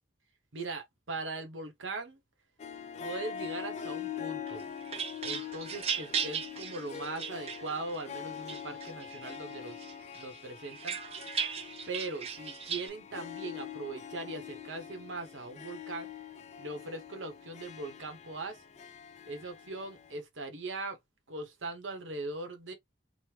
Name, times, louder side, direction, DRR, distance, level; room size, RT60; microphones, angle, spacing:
voice 1, 0.5-2.2 3.0-4.6 5.2-9.8 10.1-11.0 11.9-16.1 16.6-18.6 19.2-21.0 21.3-22.7, right 3 dB, 80° right, 1.0 m, -40 dB
Harp, 2.6-20.2, left 8 dB, 35° left, 0.3 m, -44 dB
sound 1, 4.5-8.0 8.5-9.4 9.8-12.9, right 7 dB, 30° right, 0.4 m, -37 dB
3.1 x 2.1 x 3.3 m
head